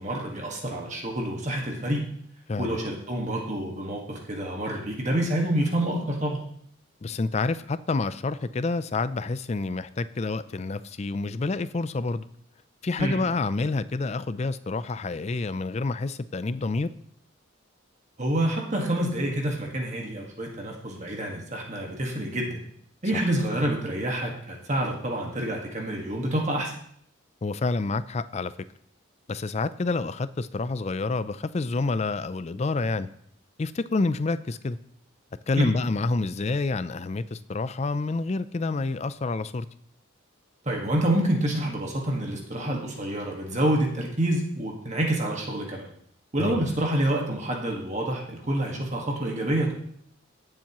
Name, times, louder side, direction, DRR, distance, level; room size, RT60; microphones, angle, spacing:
voice 1, 0.0-2.0 2.6-6.4 13.0-13.2 18.2-22.6 23.0-26.7 35.5-35.7 40.6-45.9 46.3-49.7, right 1 dB, 35° right, 0 dB, 1.6 m, -27 dB
voice 2, 7.0-12.3 12.8-16.9 23.1-23.3 27.4-28.5 29.3-33.1 33.6-34.8 35.5-39.7 46.4-46.7, left 3 dB, 30° left, 14 dB, 0.4 m, -28 dB
17.0 x 7.3 x 3.0 m, 0.67 s
head